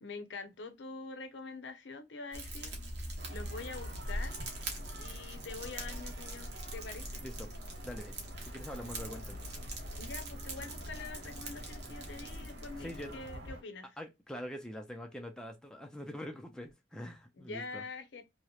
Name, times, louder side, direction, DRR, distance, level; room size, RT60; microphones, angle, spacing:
voice 1, 0.0-2.8 3.3-4.4 5.0-7.3 10.0-14.0 17.4-18.2, left 4 dB, 70° left, 0.6 m, -45 dB
Fire, 2.3-13.5, right 1 dB, 60° right, 0.9 m, -42 dB
sound 1, 3.2-13.6, equal, 80° right, 1.0 m, -50 dB
voice 2, 7.8-8.2 8.4-9.5 12.8-13.2 14.0-17.8, equal, 5° left, 0.3 m, -44 dB
2.8 x 2.0 x 2.3 m
head